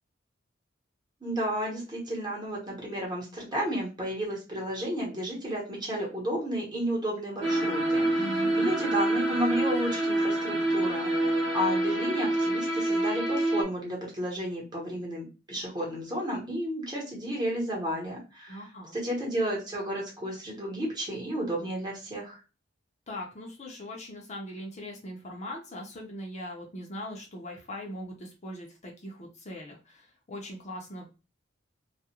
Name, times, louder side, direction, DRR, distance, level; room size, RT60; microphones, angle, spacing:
voice 1, 1.2-11.1 11.5-18.6 18.9-22.4, equal, 20° right, -3 dB, 1.0 m, -32 dB
sound 1, 7.4-13.6, right 1 dB, 75° right, 0.9 m, -27 dB
voice 2, 8.2-8.7 18.5-19.0 23.1-31.1, equal, 35° left, 0 dB, 0.6 m, -40 dB
2.3 x 2.1 x 2.8 m, 0.31 s
head